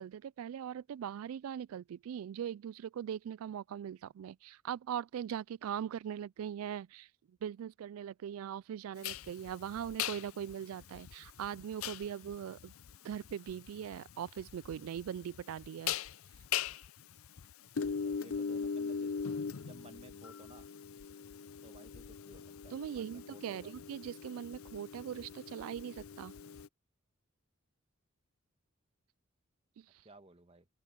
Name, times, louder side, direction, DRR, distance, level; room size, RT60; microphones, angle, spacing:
voice 1, 0.0-7.1 7.4-12.7 13.0-16.0 22.7-26.3 29.8-29.9, right 9 dB, 90° right, 0.3 m, -41 dB
sound 1, 9.0-26.7, left 7 dB, 80° left, 0.6 m, -41 dB
voice 2, 18.0-20.7 21.6-23.7 30.0-30.7, right 2 dB, 30° right, 1.4 m, -57 dB
open air
head